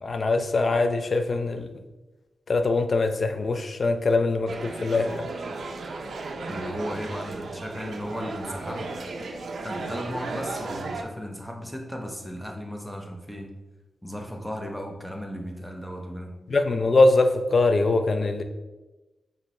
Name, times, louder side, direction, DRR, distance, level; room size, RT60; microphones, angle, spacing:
voice 1, 0.0-1.7 2.5-5.3 16.5-18.4, left 3 dB, 50° left, 7 dB, 0.4 m, -22 dB
sound 1, 4.5-11.0, right 3 dB, 70° right, 0.4 m, -35 dB
voice 2, 6.5-9.0 9.6-13.5 14.0-16.3, equal, 5° left, 2 dB, 0.6 m, -35 dB
5.1 x 2.7 x 3.1 m, 1.1 s
wide cardioid pair, 105°, 0 cm